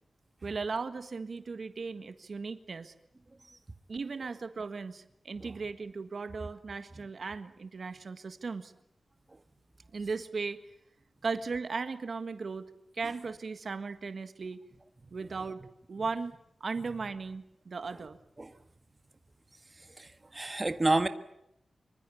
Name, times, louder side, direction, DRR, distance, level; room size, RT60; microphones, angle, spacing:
voice 1, 0.4-2.9 3.9-8.7 9.9-10.6 11.2-12.7 12.9-14.6 15.1-15.6 15.9-16.3 16.6-18.2, right 4 dB, 55° right, 10 dB, 1.6 m, -37 dB
voice 2, 20.0-21.1, right 2 dB, 25° right, 8 dB, 1.6 m, -29 dB
26.0 x 24.5 x 7.2 m, 0.78 s
wide cardioid pair, 120°, 0 cm